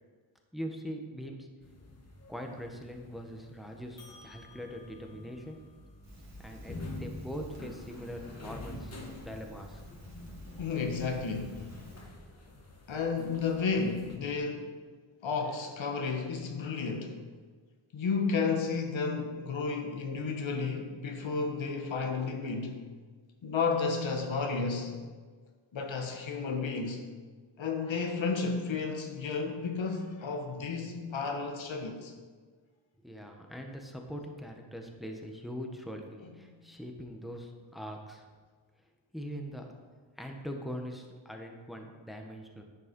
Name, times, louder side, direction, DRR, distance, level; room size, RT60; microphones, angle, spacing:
voice 1, 0.5-1.5 2.3-5.6 6.4-10.0 33.0-38.3 39.1-39.7 40.2-42.6, equal, ahead, 3 dB, 1.3 m, -42 dB
sound 1, 1.6-14.2, left 2 dB, 30° left, 1.7 m, -47 dB
Crackle, 6.0-12.1, equal, 35° right, 2.8 m, -53 dB
voice 2, 10.6-11.7 12.9-14.7 15.2-17.2 17.9-22.8 23.4-24.9 25.7-27.0 27.6-32.1 36.2-36.5, left 4 dB, 70° left, 3 dB, 1.5 m, -32 dB
10.5 x 6.7 x 5.4 m, 1.5 s
cardioid pair, 75°, 48 cm